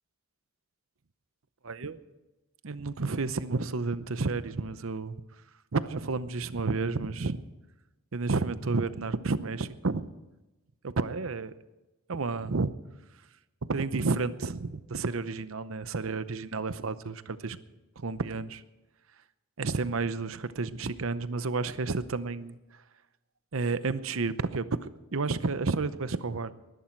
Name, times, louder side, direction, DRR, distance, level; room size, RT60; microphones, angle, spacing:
voice 1, 1.6-2.0 2.6-5.2 5.7-7.4 8.1-10.1 10.8-11.5 12.1-12.7 13.7-17.6 18.0-18.6 19.6-22.6 23.5-26.5, right 3 dB, 70° right, 14 dB, 0.8 m, -31 dB
20.0 x 11.5 x 4.6 m, 1.0 s
head